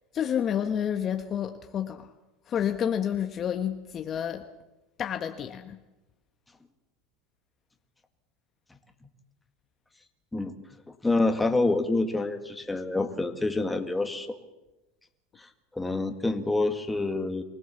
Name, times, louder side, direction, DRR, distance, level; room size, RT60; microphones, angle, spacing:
voice 1, 0.1-2.1 2.4-4.5 5.0-5.8, left 9 dB, 35° left, 7 dB, 1.1 m, -29 dB
voice 2, 11.0-14.4 15.4-17.4, left 2 dB, 10° left, 6 dB, 1.8 m, -27 dB
24.0 x 17.0 x 7.1 m, 1.0 s
supercardioid pair, 125°, 0 cm